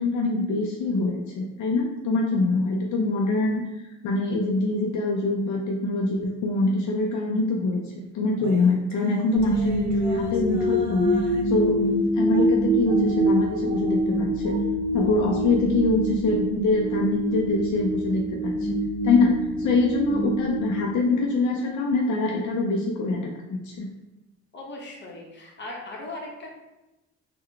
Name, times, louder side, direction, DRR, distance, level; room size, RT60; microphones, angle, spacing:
voice 1, 0.0-3.6 4.0-7.8 8.1-11.1 11.5-14.5 14.9-18.5 19.0-19.3 19.6-23.9, left 3 dB, 70° left, 0 dB, 0.5 m, -24 dB
sound 1, 8.4-11.6 12.3-12.5 12.8-14.6 15.0-15.5, right 1 dB, 70° right, 0.6 m, -38 dB
sound 2, 9.4-21.5, right 1 dB, 25° right, 1.1 m, -25 dB
voice 2, 24.5-26.5, left 2 dB, 35° left, -2 dB, 0.9 m, -38 dB
3.6 x 2.2 x 3.3 m, 0.99 s
cardioid pair, 90°, 30 cm